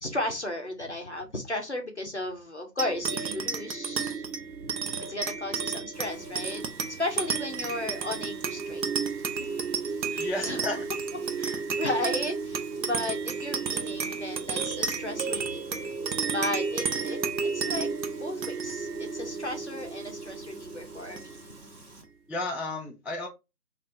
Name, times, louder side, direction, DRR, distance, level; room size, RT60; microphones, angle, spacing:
voice 1, 0.0-4.2 4.6-6.6 7.0-8.8 10.0-10.6 11.4-15.9 16.2-21.4, left 1 dB, 45° left, 0.6 m, -35 dB
sound 1, 2.8-21.6, right 5 dB, 85° right, 0.7 m, -32 dB
Frying (food), 5.9-22.0, right 2 dB, 60° right, 1.3 m, -51 dB
voice 2, 10.2-10.8 22.3-23.3, left 2 dB, 5° right, 0.3 m, -32 dB
3.3 x 2.5 x 2.5 m
figure-of-eight pair, 175°, 50 cm